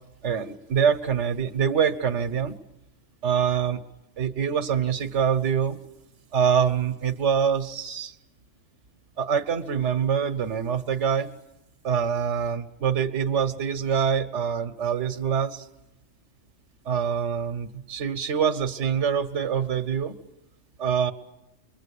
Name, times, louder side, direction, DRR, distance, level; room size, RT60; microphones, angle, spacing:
voice 1, 0.2-2.5 3.2-3.8 4.2-5.8 6.3-8.1 9.2-11.3 11.8-15.7 16.8-20.1 20.8-21.1, right 7 dB, 70° right, 9 dB, 1.5 m, -25 dB
27.0 x 23.0 x 8.5 m, 0.92 s
omnidirectional pair, 1.3 m